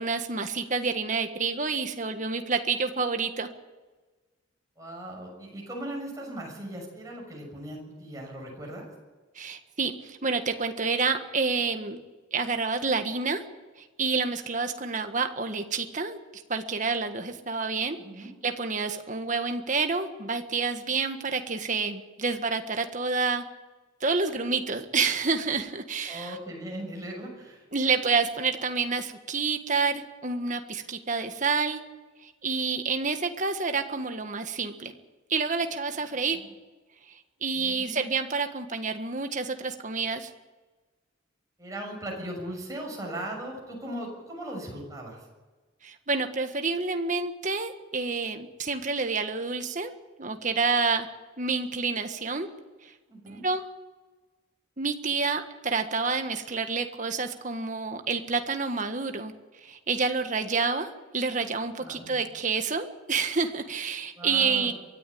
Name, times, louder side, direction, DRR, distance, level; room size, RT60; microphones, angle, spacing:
voice 1, 0.0-3.5 9.3-12.0 12.3-13.4 14.0-23.4 24.0-26.4 27.7-31.8 32.2-34.9 35.3-36.4 37.4-40.3 45.8-49.9 50.2-51.1 51.4-52.5 53.3-53.6 54.8-59.3 59.6-60.9 61.1-64.7, right 4 dB, 40° right, 6 dB, 1.6 m, -28 dB
voice 2, 4.8-8.9 18.0-18.3 26.1-27.6 36.3-36.5 37.5-38.1 41.6-45.2 53.1-53.4 61.8-62.1 64.2-64.7, right 1 dB, 15° right, -1 dB, 6.7 m, -38 dB
23.5 x 14.0 x 8.6 m, 1.3 s
head